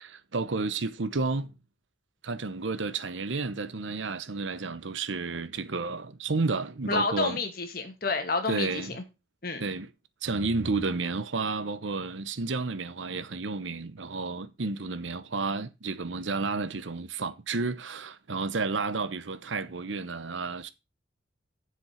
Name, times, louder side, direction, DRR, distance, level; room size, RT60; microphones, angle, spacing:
voice 1, 0.0-1.5 2.2-7.4 8.5-9.0 9.6-9.9 10.2-20.7, right 3 dB, 90° right, 0.9 m, -31 dB
voice 2, 6.9-9.0 9.4-9.7, left 3 dB, 50° left, 1.9 m, -29 dB
7.5 x 6.9 x 5.7 m
head